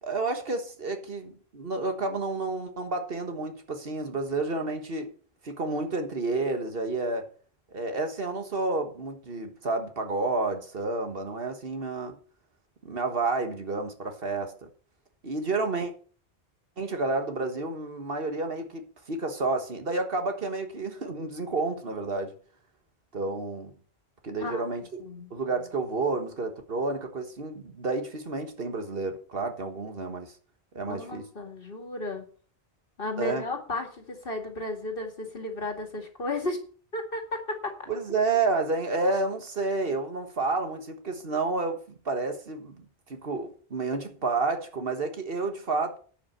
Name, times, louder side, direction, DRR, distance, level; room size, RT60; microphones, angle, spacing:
voice 1, 0.0-5.1 5.4-7.3 7.7-12.1 12.8-14.7 15.2-15.9 16.8-22.3 23.1-23.7 24.2-25.0 25.3-30.3 30.7-31.2 33.2-33.4 37.9-46.0, right 3 dB, 65° right, 1.7 m, -30 dB
voice 2, 25.0-25.3 30.8-32.3 33.0-36.6 36.9-38.2, left 2 dB, 60° left, 2.4 m, -34 dB
10.5 x 5.5 x 7.3 m
omnidirectional pair, 1.1 m